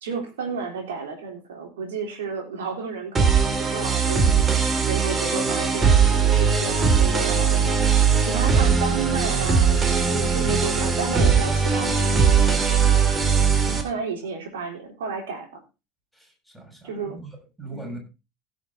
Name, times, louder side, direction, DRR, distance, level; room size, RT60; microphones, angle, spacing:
voice 1, 0.0-12.7 13.8-15.5 16.8-17.2 17.7-18.0, right 5 dB, 70° right, 2 dB, 3.6 m, -32 dB
sound 1, 3.1-13.8, right 6 dB, 25° right, 2.3 m, -20 dB
voice 2, 16.1-18.0, right 3 dB, 5° right, 0 dB, 6.4 m, -41 dB
16.5 x 6.4 x 3.9 m, 0.28 s
figure-of-eight pair, 70°, 0 cm